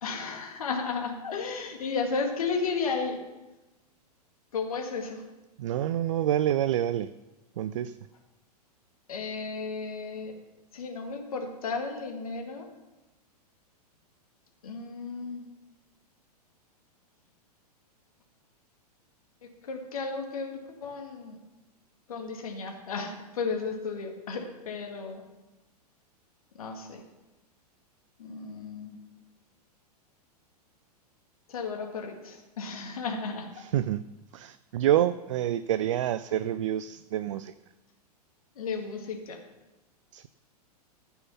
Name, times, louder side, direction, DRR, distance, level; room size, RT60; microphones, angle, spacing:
voice 1, 0.0-3.2 4.5-5.2 9.1-10.3 10.7-12.7 14.6-15.4 19.4-21.4 22.1-25.2 26.6-27.0 28.2-29.0 31.5-33.5 36.3-36.4 38.6-39.4, left 4 dB, 60° left, 3 dB, 1.9 m, -34 dB
voice 2, 5.6-7.1 7.6-8.0 33.6-34.0 34.3-37.5 40.1-40.3, right 11 dB, 50° right, 13 dB, 0.4 m, -27 dB
14.5 x 5.6 x 5.7 m, 1.1 s
figure-of-eight pair, 100°, 21 cm